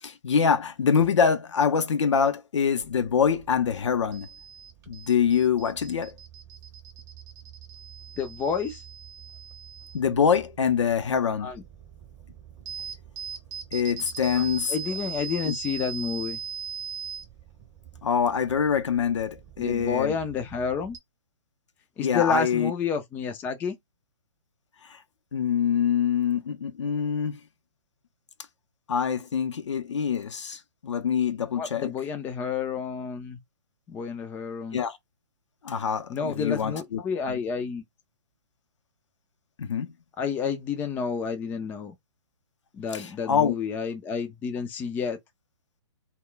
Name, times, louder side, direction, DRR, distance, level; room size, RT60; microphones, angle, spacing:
voice 1, 0.0-4.3 4.9-6.2 9.9-11.5 13.7-14.7 15.4-15.5 18.0-20.1 22.0-22.7 24.8-25.0 25.3-27.4 28.9-31.9 34.7-35.0 35.6-37.0 37.3-37.4 39.6-40.0 42.9-43.5, left 7 dB, 70° left, 0.6 m, -25 dB
sound 1, 2.8-21.0, right 7 dB, 20° right, 0.7 m, -41 dB
voice 2, 8.2-8.8 11.4-11.6 14.4-14.5 14.7-16.4 19.6-21.0 22.0-23.7 31.5-33.4 33.9-34.8 36.1-37.8 40.2-41.9 42.7-45.2, left 6 dB, 10° left, 0.4 m, -30 dB
2.2 x 2.1 x 3.7 m
hypercardioid pair, 130°, 16 cm